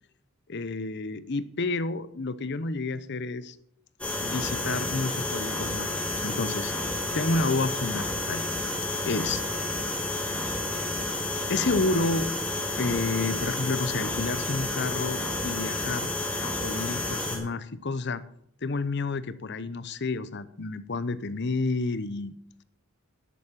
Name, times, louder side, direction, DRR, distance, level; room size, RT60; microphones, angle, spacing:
voice 1, 0.5-3.6 4.2-5.9 6.2-6.7 7.1-8.4 9.0-9.4 11.5-12.3 12.8-16.1 16.4-18.2 18.6-22.3, left 3 dB, 50° left, 15 dB, 0.7 m, -30 dB
sound 1, 4.0-17.4, left 2 dB, 5° left, 3.2 m, -30 dB
11.0 x 8.4 x 7.4 m, 0.71 s
head